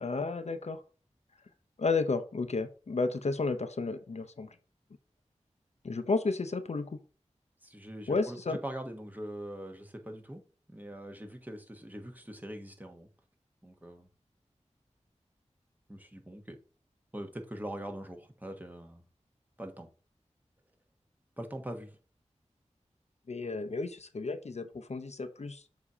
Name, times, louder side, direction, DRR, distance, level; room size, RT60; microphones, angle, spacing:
voice 1, 0.0-0.8 1.8-4.6 5.8-7.0 8.1-8.6 23.3-25.6, left 3 dB, 60° left, 0.6 m, -32 dB
voice 2, 7.6-10.4 10.7-13.1 13.6-14.1 15.9-16.6 17.1-19.0 19.6-19.9 21.4-22.0, right 1 dB, 15° right, 1.2 m, -42 dB
7.0 x 2.8 x 4.9 m
wide cardioid pair, 45°, 12 cm